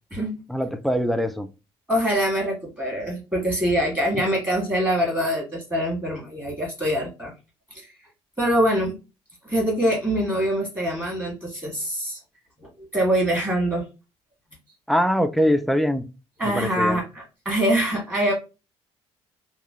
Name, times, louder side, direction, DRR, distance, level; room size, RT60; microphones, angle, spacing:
voice 1, 0.5-1.5 4.1-4.2 14.9-16.0 16.4-17.0, equal, ahead, 9 dB, 0.3 m, -23 dB
voice 2, 1.9-7.3 7.7-7.9 8.4-8.9 9.4-12.2 12.8-13.8 16.4-18.3, equal, 15° right, -3 dB, 1.5 m, -24 dB
3.1 x 2.2 x 2.3 m, 0.30 s
cardioid pair, 95°, 11 cm